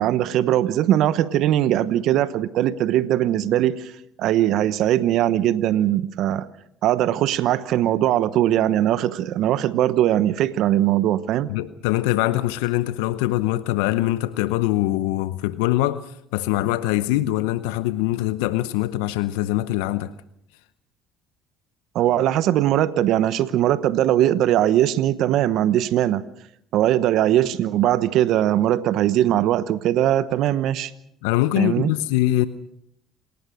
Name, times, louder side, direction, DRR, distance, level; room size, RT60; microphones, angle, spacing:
voice 1, 0.0-3.9 4.2-6.5 6.8-11.5 21.9-26.2 26.7-30.9 31.6-31.9, right 12 dB, 65° right, 1.0 m, -20 dB
voice 2, 11.5-20.1 31.2-32.5, left 16 dB, 80° left, 0.8 m, -23 dB
27.5 x 18.0 x 6.4 m
hypercardioid pair, 65°, 0 cm